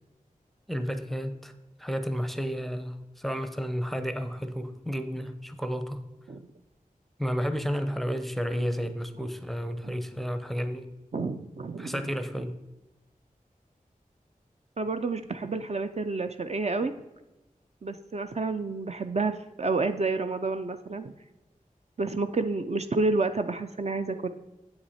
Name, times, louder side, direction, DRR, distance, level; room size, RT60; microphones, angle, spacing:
voice 1, 0.7-1.5 1.8-6.0 7.2-10.9 11.8-12.5, equal, ahead, 9 dB, 0.6 m, -31 dB
voice 2, 11.1-12.0 14.8-16.9 17.8-21.1 22.0-24.3, right 3 dB, 50° right, 8 dB, 0.4 m, -29 dB
7.8 x 5.8 x 4.2 m, 1.0 s
wide cardioid pair, 70°, 15 cm